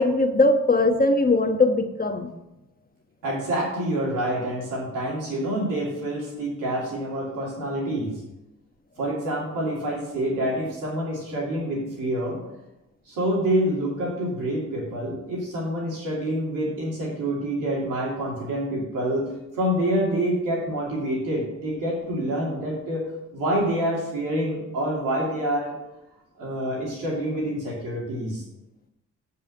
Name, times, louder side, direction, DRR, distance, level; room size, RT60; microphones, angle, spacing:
voice 1, 0.0-2.3, left 2 dB, 30° left, 6 dB, 1.2 m, -20 dB
voice 2, 3.2-8.1 9.0-12.4 13.1-19.2 19.5-23.1 23.3-25.8 26.4-28.4, right 1 dB, 85° right, -3 dB, 2.8 m, -27 dB
7.5 x 5.6 x 6.6 m, 0.92 s
supercardioid pair, 45°, 32 cm